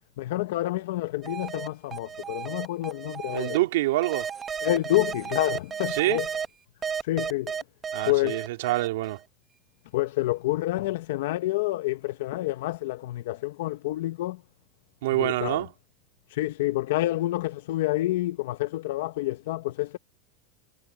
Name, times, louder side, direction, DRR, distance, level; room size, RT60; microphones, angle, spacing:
voice 1, 0.2-3.6 4.6-6.3 7.0-7.5 8.1-8.4 9.9-14.4 15.2-15.6 16.3-20.0, left 17 dB, 75° left, 0.8 m, -28 dB
sound 1, 1.2-3.6 4.0-6.5 6.8-9.2, right 7 dB, 20° right, 0.7 m, -33 dB
voice 2, 3.3-4.3 5.9-6.2 7.9-9.2 15.0-15.7, right 17 dB, 80° right, 2.4 m, -26 dB
supercardioid pair, 150°, 0 cm